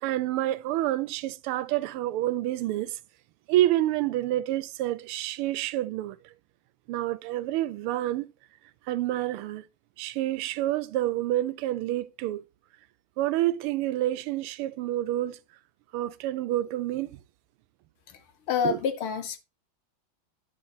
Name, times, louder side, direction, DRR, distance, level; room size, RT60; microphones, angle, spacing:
voice 1, 0.0-3.0 3.5-6.3 6.9-8.3 8.9-9.7 10.0-12.4 13.2-15.4 15.9-17.2 18.6-18.8, right 14 dB, 90° right, 1.5 m, -28 dB
voice 2, 18.5-19.4, left 7 dB, 80° left, 1.9 m, -28 dB
11.0 x 3.9 x 3.9 m
omnidirectional pair, 2.4 m